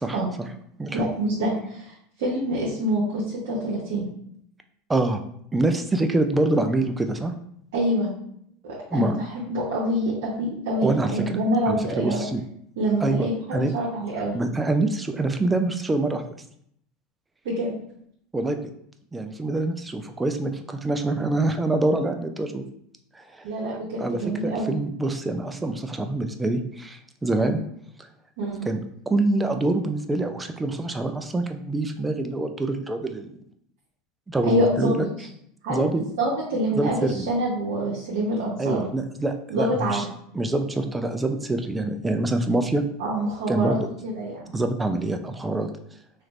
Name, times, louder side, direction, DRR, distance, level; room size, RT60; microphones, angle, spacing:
voice 1, 0.0-0.5 0.8-1.0 4.9-5.2 5.5-7.3 8.9-9.2 10.8-11.4 11.7-12.4 13.0-13.7 14.3-16.2 18.3-18.6 19.1-22.6 23.1-23.4 24.0-27.6 28.0-28.1 28.7-33.3 34.3-35.0 35.7-36.0 36.8-37.3 38.6-40.0 40.3-42.8 43.5-43.9 44.5-45.7, right 2 dB, 15° right, 7 dB, 0.4 m, -25 dB
voice 2, 0.9-4.0 7.7-8.1 8.6-12.2 12.8-14.4 17.4-17.7 23.4-24.8 28.4-28.7 34.4-35.1 35.6-38.9 39.5-40.0 43.0-43.8 44.0-44.5, right 1 dB, 70° right, -6 dB, 0.9 m, -26 dB
3.1 x 2.5 x 3.1 m, 0.69 s
hypercardioid pair, 95°, 0 cm